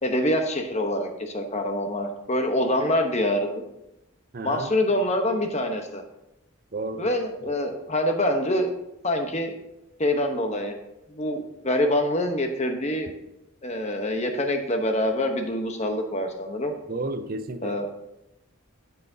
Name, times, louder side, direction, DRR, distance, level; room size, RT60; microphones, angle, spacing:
voice 1, 0.0-3.6 4.4-6.0 7.0-8.7 9.0-9.5 10.0-10.7 11.1-13.1 13.6-16.7 17.6-17.9, left 1 dB, 35° left, 0.9 m, -25 dB
voice 2, 4.3-4.7 6.7-7.1 7.4-7.5 16.9-17.8, right 2 dB, 45° right, 0.5 m, -32 dB
13.5 x 5.8 x 2.7 m
head